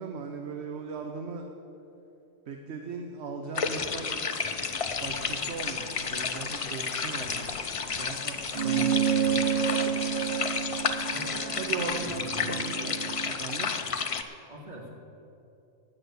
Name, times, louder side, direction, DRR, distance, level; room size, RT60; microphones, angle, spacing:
voice 1, 0.0-1.5 2.5-4.2 5.0-7.6 8.0-9.4 11.6-13.7, right 5 dB, 60° right, 4 dB, 1.0 m, -38 dB
sound 1, 3.5-14.2, left 5 dB, 60° left, 0.3 m, -32 dB
sound 2, 4.5-12.4, right 1 dB, 15° right, 1.4 m, -51 dB
sound 3, 8.5-13.3, right 9 dB, 80° right, 0.4 m, -29 dB
voice 2, 11.1-11.9 12.2-12.6 14.5-14.9, equal, 35° right, -1 dB, 1.9 m, -42 dB
9.7 x 8.8 x 8.1 m, 2.9 s
omnidirectional pair, 1.4 m